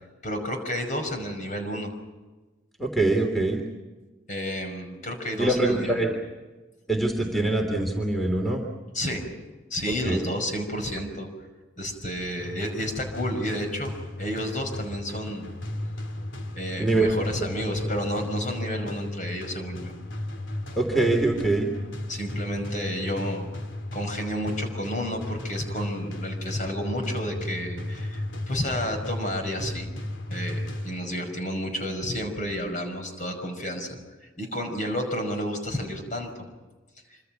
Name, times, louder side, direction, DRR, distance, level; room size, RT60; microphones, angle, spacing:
voice 1, 0.2-1.9 4.3-6.1 8.9-9.3 9.7-11.3 11.8-15.5 16.5-19.9 22.1-23.5 23.9-29.9 30.3-36.3 37.1-37.2, equal, 40° left, 4 dB, 5.4 m, -31 dB
voice 2, 2.8-3.6 5.4-6.1 6.9-8.6 9.9-10.2 16.8-17.3 20.7-21.7, right 2 dB, ahead, 2 dB, 3.1 m, -24 dB
sound 1, 12.4-31.4, left 1 dB, 80° left, 2.9 m, -35 dB
27.0 x 25.5 x 5.9 m, 1.2 s
head